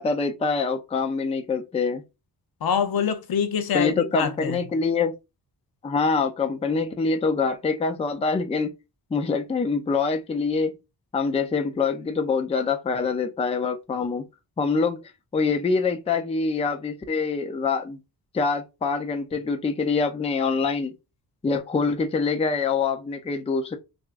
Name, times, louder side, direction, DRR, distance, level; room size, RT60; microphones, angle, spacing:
voice 1, 0.0-2.0 3.7-5.1 5.8-8.7 9.1-10.7 11.1-14.3 14.6-15.0 15.3-18.0 18.3-21.0 21.4-23.8, left 4 dB, 15° left, 0.4 m, -25 dB
voice 2, 2.6-4.6, left 7 dB, 70° left, 0.8 m, -25 dB
6.0 x 2.4 x 2.4 m
wide cardioid pair, 150°, 38 cm